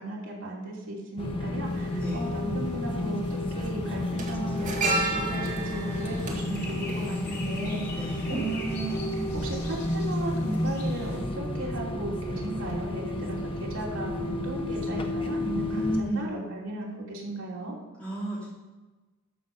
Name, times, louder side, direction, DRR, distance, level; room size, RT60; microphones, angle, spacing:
voice 1, 0.0-15.8 16.1-17.8, right 2 dB, 70° right, -4 dB, 3.1 m, -36 dB
sound 1, 1.2-16.0, left 1 dB, 25° left, 0.9 m, -31 dB
sound 2, 1.7-1.8 3.0-3.3 3.5-7.8 8.1-8.3, right 2 dB, 35° right, 1.8 m, -32 dB
voice 2, 1.8-2.3 7.9-8.4 15.7-16.6 18.0-18.5, right 1 dB, 5° left, -11 dB, 3.3 m, -32 dB
sound 3, 5.4-11.2, left 2 dB, 50° left, 2.7 m, -44 dB
13.5 x 6.1 x 5.3 m, 1.2 s
head